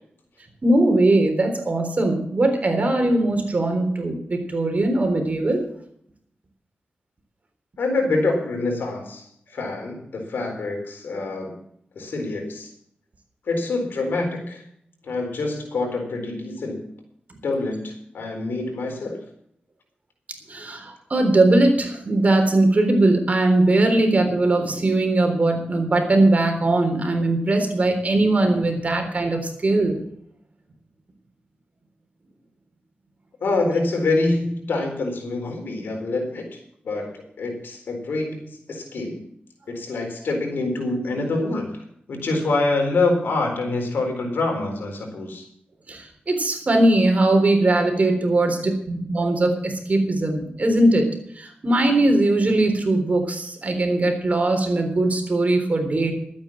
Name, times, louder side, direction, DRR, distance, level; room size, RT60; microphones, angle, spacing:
voice 1, 0.6-5.6 20.5-30.0 45.9-51.1 51.4-56.1, right 2 dB, 45° right, 5 dB, 3.7 m, -20 dB
voice 2, 7.8-11.6 11.9-12.7 13.5-14.6 15.0-16.9 17.4-19.2 33.4-36.6 36.8-39.3 39.7-45.4, left 2 dB, 85° left, 2 dB, 4.1 m, -26 dB
12.5 x 8.8 x 7.2 m, 0.69 s
cardioid pair, 70°, 3 cm